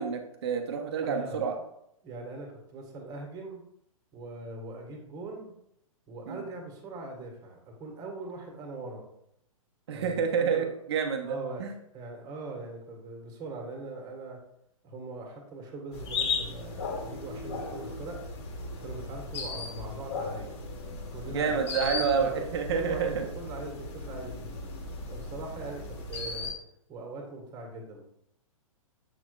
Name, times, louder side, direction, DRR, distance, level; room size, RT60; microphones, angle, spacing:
voice 1, 0.0-1.6 6.3-6.4 9.9-11.7 21.3-23.2, right 6 dB, 50° right, 4 dB, 1.1 m, -29 dB
voice 2, 1.0-1.4 2.0-3.6 4.1-5.5 6.1-9.1 9.9-10.7 11.2-11.6 11.9-14.4 14.8-18.2 18.8-20.6 21.1-22.3 22.7-24.6 25.1-26.5 26.9-28.0, right 2 dB, 20° right, 1 dB, 1.6 m, -41 dB
sound 1, 15.9-26.5, left 3 dB, 50° left, 1.7 m, -36 dB
7.9 x 6.2 x 2.4 m, 0.75 s
figure-of-eight pair, 115°, 18 cm